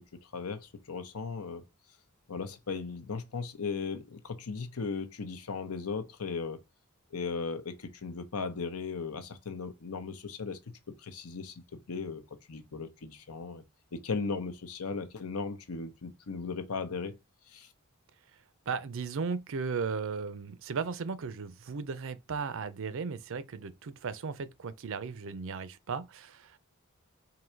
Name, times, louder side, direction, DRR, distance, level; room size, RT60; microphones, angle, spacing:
voice 1, 0.3-1.6 2.3-6.6 7.1-10.6 11.0-11.5 11.9-12.2 12.5-13.6 13.9-17.1 17.5-17.7, left 4 dB, 80° left, 0.8 m, -37 dB
voice 2, 18.7-26.6, right 5 dB, 60° right, 0.5 m, -36 dB
3.9 x 2.7 x 4.4 m
head